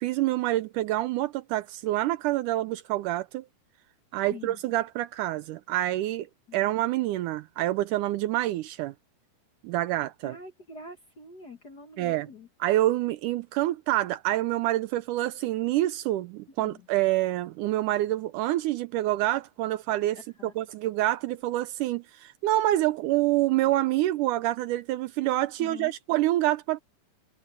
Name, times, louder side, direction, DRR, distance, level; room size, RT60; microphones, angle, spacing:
voice 1, 0.0-3.5 4.1-6.3 6.5-8.9 9.6-10.4 12.0-12.3 12.6-26.8, right 15 dB, 80° right, 2.0 m, -27 dB
voice 2, 4.2-4.6 6.5-6.7 10.2-12.5 16.6-16.9 20.1-20.5 25.6-26.0, left 3 dB, 40° left, 1.7 m, -45 dB
omnidirectional pair, 3.9 m